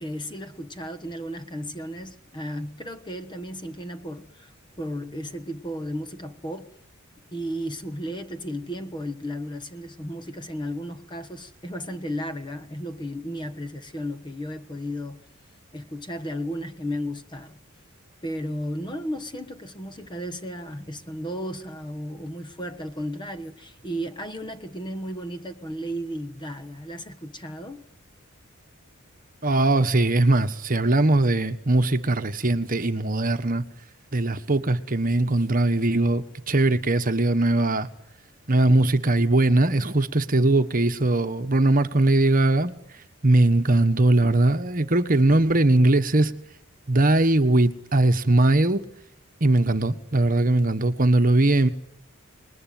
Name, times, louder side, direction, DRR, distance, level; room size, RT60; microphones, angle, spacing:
voice 1, 0.0-4.5 4.8-6.7 7.3-15.2 15.7-17.6 18.2-27.8, equal, 20° left, 1.3 m, -34 dB
voice 2, 29.4-33.6 34.1-37.9 38.5-42.7 43.2-46.3 46.9-48.8 49.4-51.7, right 2 dB, 40° right, 1.4 m, -20 dB
28.5 x 20.5 x 9.2 m
head